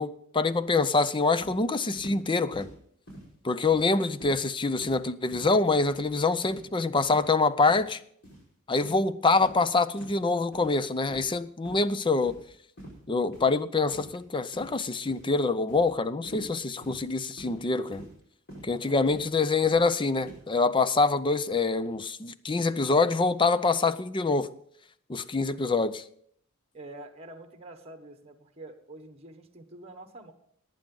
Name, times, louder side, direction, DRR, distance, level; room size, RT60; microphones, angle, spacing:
voice 1, 0.0-2.7 3.4-8.0 8.7-12.4 13.1-18.1 18.6-24.5 25.1-26.0, left 3 dB, 25° left, 0.5 m, -25 dB
sound 1, 1.4-1.6 1.9-2.2 2.5-2.7 3.1-3.3 3.6-3.9 4.2-4.4 4.7-5.0 5.3-5.6 5.9-6.1 6.4-6.7 7.0-7.2 7.6-7.8 8.2-8.4 8.8-9.0 9.4-9.6 9.9-10.2 10.5-10.7 11.1-11.4 11.6-11.8 12.2-12.5 12.8-13.0 13.3-13.5 13.9-14.2 14.5-14.8 15.1-15.3 15.7-15.9 16.2-16.5 16.8-17.0 17.4-17.6 17.9-18.1 18.5-18.7 19.0-19.3 19.6-19.8 20.2-20.4, equal, 55° left, 4.9 m, -45 dB
voice 2, 26.7-30.3, right 2 dB, 30° right, 1.3 m, -46 dB
18.5 x 9.1 x 3.9 m
head